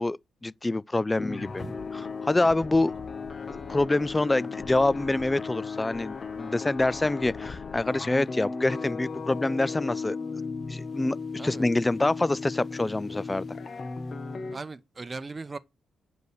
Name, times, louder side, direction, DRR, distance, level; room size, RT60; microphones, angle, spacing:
voice 1, 0.0-1.6 1.9-2.9 3.5-10.2 10.7-11.2 11.4-13.5, left 2 dB, 20° left, 0.4 m, -26 dB
sound 1, 1.2-14.6, left 4 dB, 45° left, 1.3 m, -36 dB
voice 2, 14.5-15.6, right 3 dB, 35° right, 0.7 m, -38 dB
7.9 x 5.3 x 4.9 m
supercardioid pair, 50°, 0 cm